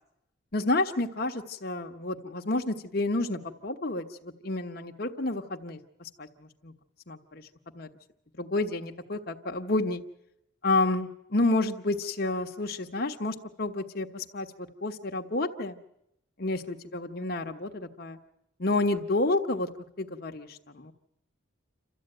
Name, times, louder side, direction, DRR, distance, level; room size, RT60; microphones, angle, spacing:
voice 1, 0.5-6.7 7.1-7.4 7.7-7.9 8.4-10.0 10.6-14.5 14.8-15.8 16.4-18.2 18.6-19.7 20.0-20.9, left 2 dB, 50° left, 4 dB, 1.2 m, -30 dB
28.5 x 13.0 x 9.0 m, 0.80 s
head